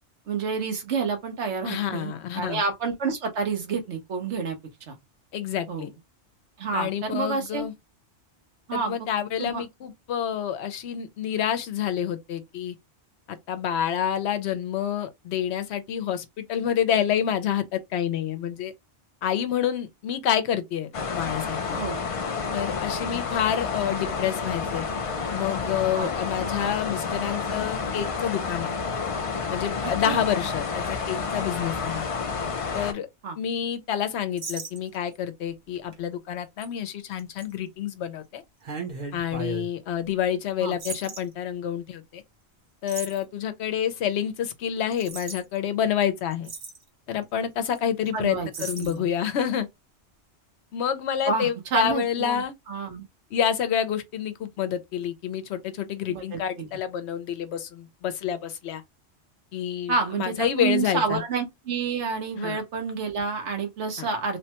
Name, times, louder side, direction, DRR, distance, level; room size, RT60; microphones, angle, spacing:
voice 1, 0.3-4.6 4.9-5.0 5.7-5.9 6.6-7.7 8.7-9.0 9.4-9.6 21.7-22.0 25.9-26.1 30.1-30.2 33.2-33.4 40.6-40.7 48.1-48.5 48.8-49.1 51.2-53.0 56.1-56.7 59.9-64.4, right 4 dB, 85° right, 1.2 m, -29 dB
voice 2, 1.6-2.6 5.3-5.9 6.7-7.7 8.7-12.8 13.3-18.7 19.2-21.8 22.5-24.8 25.3-28.7 29.5-32.1 32.7-33.1 33.4-38.4 39.1-42.2 42.8-46.5 47.1-49.7 50.7-52.5 53.3-58.8 59.5-61.2 62.4-62.6 64.0-64.1, left 9 dB, 75° left, 0.9 m, -28 dB
sound 1, 20.9-32.9, left 5 dB, 45° left, 0.4 m, -30 dB
sound 2, 34.4-35.2 35.7-35.9 36.6-36.7 37.2-37.4 38.6-39.7 40.8-41.2 42.9-43.2 44.9-45.4 46.0-46.1 46.3-46.8 47.6-47.8 48.1-48.2 48.5-48.9, right 4 dB, 45° right, 0.8 m, -36 dB
3.2 x 2.1 x 2.8 m
omnidirectional pair, 1.2 m